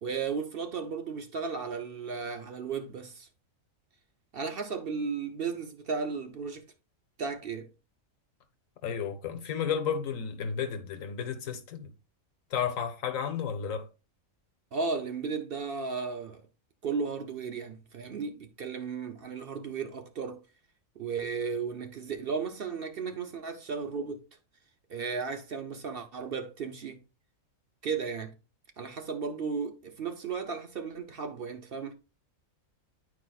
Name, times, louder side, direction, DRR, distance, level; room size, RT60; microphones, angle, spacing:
voice 1, 0.0-3.3 4.3-6.6 7.2-7.7 14.7-16.4 16.8-20.4 21.0-24.2 24.9-27.0 27.8-28.3 28.8-31.9, right 5 dB, 55° right, 0.7 m, -35 dB
voice 2, 8.8-11.9 12.5-13.9, left 7 dB, 70° left, 1.3 m, -32 dB
9.8 x 4.8 x 2.3 m
omnidirectional pair, 1.4 m